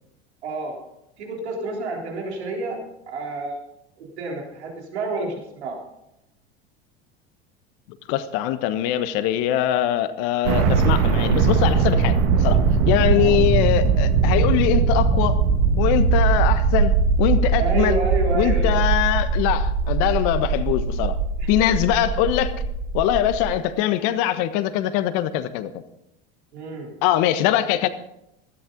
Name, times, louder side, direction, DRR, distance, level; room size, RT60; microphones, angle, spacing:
voice 1, 0.4-0.8 1.2-3.6 4.0-5.8 13.2-13.4 17.6-18.8 21.4-21.7 26.5-27.0, right 2 dB, 80° right, 0 dB, 3.8 m, -29 dB
voice 2, 8.1-12.6 12.8-15.4 15.8-18.0 18.3-21.2 21.5-22.5 22.9-25.7 27.0-27.9, left 12 dB, 60° left, 11 dB, 1.4 m, -22 dB
sound 1, 10.4-23.5, right 5 dB, 65° right, 1.8 m, -20 dB
17.0 x 13.0 x 4.0 m, 0.83 s
hypercardioid pair, 85°, 32 cm